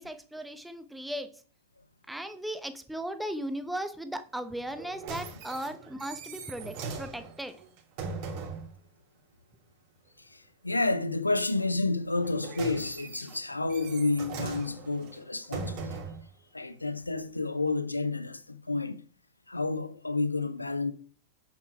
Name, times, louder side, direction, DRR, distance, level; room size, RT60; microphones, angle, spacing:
voice 1, 0.0-1.4 2.1-7.6, right 1 dB, 5° right, 1.1 m, -37 dB
sound 1, 4.7-8.7 12.1-16.3 17.0-17.1, right 4 dB, 45° right, 2.7 m, -40 dB
voice 2, 10.6-16.0 16.5-19.0 19.5-20.9, left 3 dB, 85° left, 0.7 m, -30 dB
8.0 x 7.4 x 4.3 m
figure-of-eight pair, 90°, 0 cm